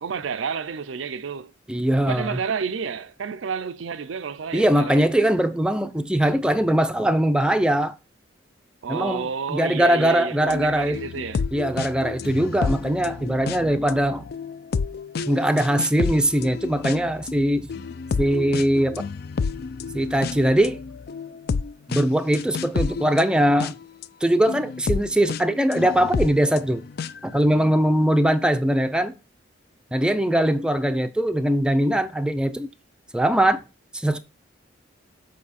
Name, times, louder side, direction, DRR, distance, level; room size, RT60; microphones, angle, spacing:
voice 1, 0.0-1.5 2.1-5.0 8.8-11.4, right 6 dB, 90° right, 0.5 m, -30 dB
voice 2, 1.7-2.4 4.5-7.9 8.9-9.2 9.5-11.0 11.5-14.2 15.3-17.7 18.2-19.0 19.9-20.8 21.9-23.8 24.2-26.8 27.2-29.1 29.9-32.7 33.1-33.6 33.9-34.2, right 1 dB, 5° right, 0.5 m, -21 dB
sound 1, 10.5-24.0 24.5-27.4, left 5 dB, 55° left, 0.4 m, -30 dB
7.4 x 4.8 x 4.2 m
head